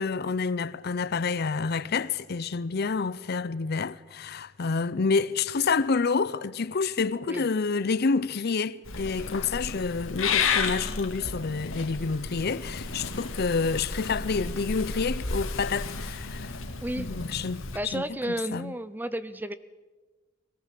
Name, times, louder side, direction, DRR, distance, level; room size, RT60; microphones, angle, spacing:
voice 1, 0.0-16.5 17.0-18.7, left 4 dB, 50° left, 0.6 m, -28 dB
Purr / Meow, 8.9-17.8, left 5 dB, 85° left, 2.2 m, -32 dB
voice 2, 16.8-17.2 17.7-19.6, right 1 dB, 10° right, 0.6 m, -32 dB
21.5 x 18.5 x 7.5 m
head